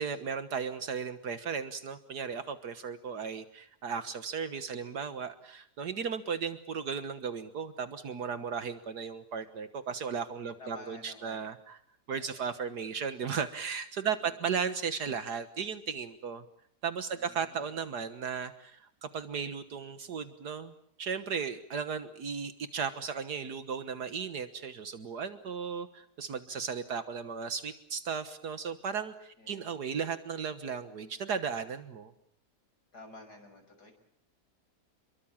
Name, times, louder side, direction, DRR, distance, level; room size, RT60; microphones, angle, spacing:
voice 1, 0.0-11.8 12.1-16.4 16.8-20.7 21.0-32.1, right 6 dB, 70° right, 10 dB, 1.9 m, -36 dB
voice 2, 10.6-11.5 12.1-12.4 14.2-14.4 17.1-17.8 29.4-29.7 32.9-33.9, left 2 dB, 70° left, 5 dB, 6.8 m, -51 dB
28.5 x 23.0 x 7.3 m, 0.68 s
omnidirectional pair, 1.8 m